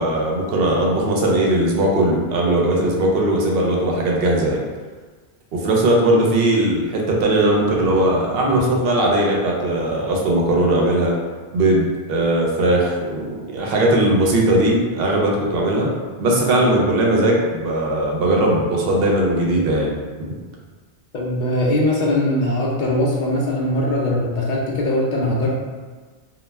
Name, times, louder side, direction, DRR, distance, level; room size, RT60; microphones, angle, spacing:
voice 1, 0.0-4.6 5.5-11.1 11.5-15.9 16.2-20.0 20.3-20.4, right 1 dB, 65° right, -2 dB, 0.7 m, -19 dB
voice 2, 21.1-25.5, left 1 dB, 55° left, -3 dB, 0.6 m, -21 dB
2.3 x 2.1 x 3.3 m, 1.4 s
omnidirectional pair, 1.1 m